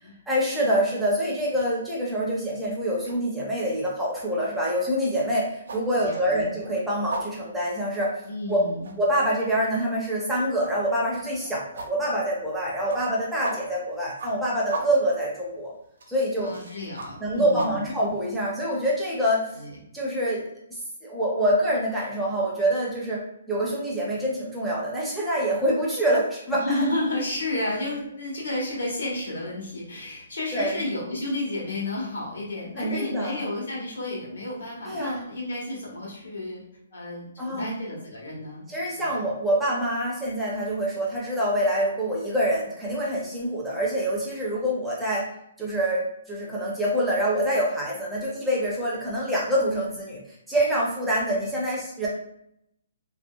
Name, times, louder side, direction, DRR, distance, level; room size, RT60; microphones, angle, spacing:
voice 1, 0.3-8.1 8.5-8.7 9.0-15.7 16.1-16.5 17.2-19.6 19.9-20.4 20.7-26.8 30.5-30.7 32.8-33.4 34.9-35.2 37.4-37.8 38.7-45.3 45.6-52.1, right 1 dB, ahead, -6 dB, 0.4 m, -26 dB
sound 1, 1.4-1.7 2.1-19.0, right 3 dB, 60° right, 0.5 m, -39 dB
voice 2, 6.0-6.5 8.2-8.9 16.4-17.9 19.5-19.7 26.5-36.6 36.9-38.7 38.9-39.2, left 2 dB, 75° left, -4 dB, 1.2 m, -32 dB
2.8 x 2.7 x 2.2 m, 0.77 s
hypercardioid pair, 180°, 0 cm